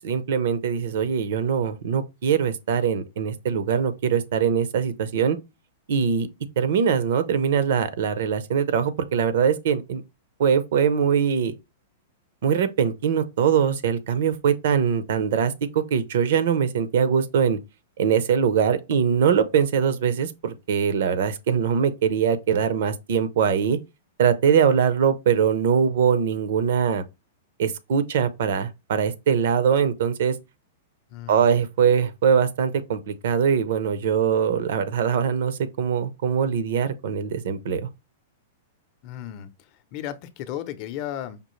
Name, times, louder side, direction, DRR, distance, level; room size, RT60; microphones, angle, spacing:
voice 1, 0.0-5.4 5.9-6.3 6.6-10.0 10.4-11.5 12.4-17.6 18.0-23.8 24.2-27.0 27.6-30.3 31.3-37.8, right 7 dB, 70° right, 0.6 m, -22 dB
voice 2, 31.1-31.5 39.0-41.4, left 11 dB, 40° left, 0.6 m, -35 dB
5.1 x 2.4 x 3.1 m
hypercardioid pair, 140°, 0 cm